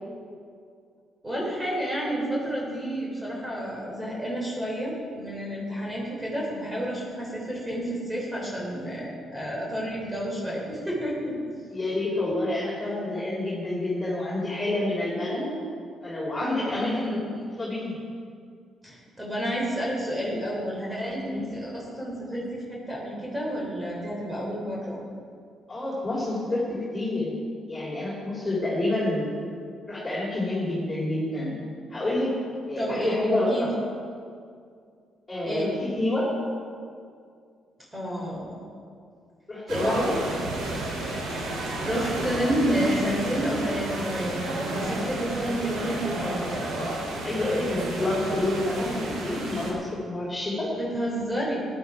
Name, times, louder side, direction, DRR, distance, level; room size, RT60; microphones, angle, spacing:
voice 1, 1.2-11.4 16.7-17.2 18.8-25.0 32.8-33.1 33.5-33.7 35.4-35.8 37.9-38.6 39.8-40.0 40.3-40.4 41.6-46.7 50.8-51.6, equal, 15° right, -4 dB, 3.4 m, -30 dB
voice 2, 11.7-15.5 16.0-17.2 17.6-18.0 21.3-21.4 25.7-27.3 27.7-29.3 29.9-31.6 31.9-32.4 32.7-33.7 35.3-36.3 39.5-40.2 47.2-49.8 50.0-50.7, left 1 dB, 20° left, -6 dB, 3.5 m, -28 dB
sound 1, 39.7-49.7, right 2 dB, 85° right, 3.0 m, -31 dB
15.0 x 10.5 x 4.8 m, 2.3 s
cardioid pair, 90°, 0 cm